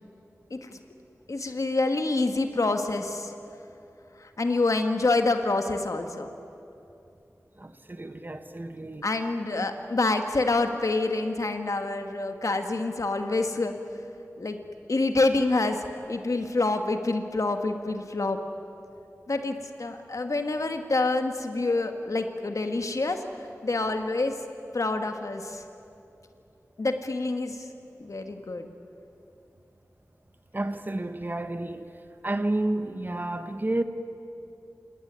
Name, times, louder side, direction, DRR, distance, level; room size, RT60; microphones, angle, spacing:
voice 1, 1.3-3.3 4.2-6.3 9.0-13.7 14.4-14.6 14.9-18.4 19.3-23.2 23.6-24.4 24.7-25.6 26.8-27.7 28.0-28.7, left 2 dB, 65° left, 1.9 m, -27 dB
voice 2, 7.6-9.1 9.5-9.6 30.5-33.8, right 1 dB, 35° right, 1.4 m, -31 dB
28.0 x 19.0 x 9.6 m
wide cardioid pair, 70°, 6 cm